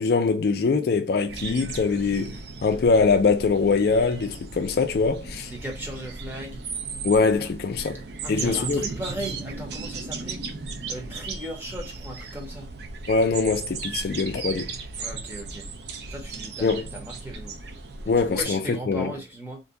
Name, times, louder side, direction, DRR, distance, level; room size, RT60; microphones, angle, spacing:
voice 1, 0.0-5.5 7.0-8.0 8.3-8.9 13.1-14.7 16.6-16.8 18.1-19.1, left 4 dB, 60° left, 0.4 m, -23 dB
sound 1, 1.3-18.4, right 4 dB, 65° right, 0.5 m, -36 dB
voice 2, 5.5-6.6 8.2-10.4 10.9-12.7 15.0-15.7 16.1-17.5 18.0-19.6, right 1 dB, 10° right, 0.7 m, -37 dB
2.6 x 2.2 x 3.6 m
head